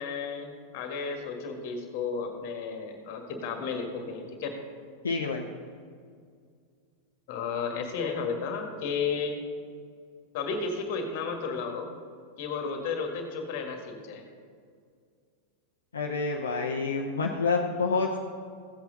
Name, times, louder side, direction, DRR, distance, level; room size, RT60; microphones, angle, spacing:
voice 1, 0.0-4.5 7.3-9.4 10.3-11.9 12.4-14.2, left 5 dB, 50° left, 4 dB, 1.8 m, -33 dB
voice 2, 5.0-5.5 15.9-18.2, left 4 dB, 70° left, 0 dB, 0.8 m, -28 dB
15.5 x 8.1 x 4.0 m, 2.1 s
figure-of-eight pair, 90°, 0 cm